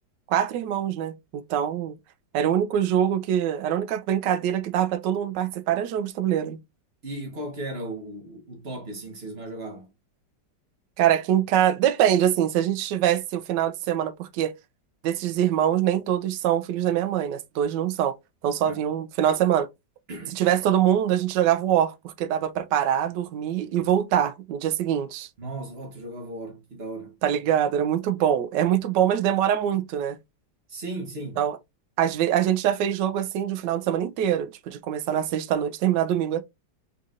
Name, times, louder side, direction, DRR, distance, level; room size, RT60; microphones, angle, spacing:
voice 1, 0.3-1.9 2.3-6.6 11.0-14.5 15.0-18.2 18.4-19.7 20.3-25.3 27.2-30.2 31.4-31.6 32.0-36.4, right 10 dB, 75° right, 1.2 m, -24 dB
voice 2, 7.0-9.9 18.6-18.8 20.1-20.4 25.4-27.2 30.7-31.4, right 1 dB, 35° right, 1.4 m, -36 dB
4.0 x 3.9 x 2.4 m
omnidirectional pair, 2.0 m